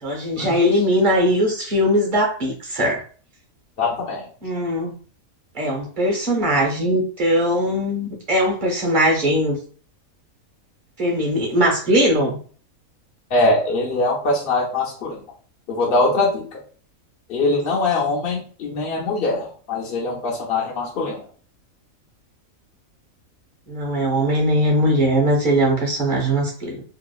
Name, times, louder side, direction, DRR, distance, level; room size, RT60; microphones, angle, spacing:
voice 1, 0.0-3.0 4.4-4.9 5.5-9.6 11.0-12.4 23.7-26.8, equal, 40° right, -1 dB, 1.0 m, -20 dB
voice 2, 3.8-4.3 13.3-15.2 15.7-16.6 17.3-21.3, left 2 dB, 55° left, -4 dB, 0.6 m, -22 dB
2.8 x 2.3 x 2.3 m, 0.41 s
omnidirectional pair, 1.5 m